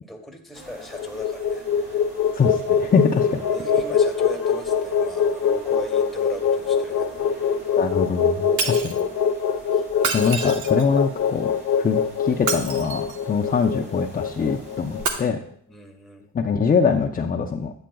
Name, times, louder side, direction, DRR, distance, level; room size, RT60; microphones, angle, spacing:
voice 1, 0.0-2.1 3.5-7.8 8.6-9.0 9.7-10.3 15.7-16.2, equal, ahead, 2 dB, 1.5 m, -40 dB
sound 1, 0.5-15.2, right 1 dB, 30° right, 3.0 m, -46 dB
sound 2, 0.8-15.1, left 7 dB, 65° left, 0.8 m, -23 dB
voice 2, 2.3-3.4 7.8-9.0 10.1-11.5 11.8-15.4 16.3-17.7, left 5 dB, 30° left, 2 dB, 0.6 m, -23 dB
Shatter, 8.6-9.0 9.9-11.0 12.3-13.3 15.0-15.1, right 5 dB, 80° right, 1.1 m, -27 dB
8.8 x 8.5 x 2.3 m, 0.62 s
cardioid pair, 90°, 30 cm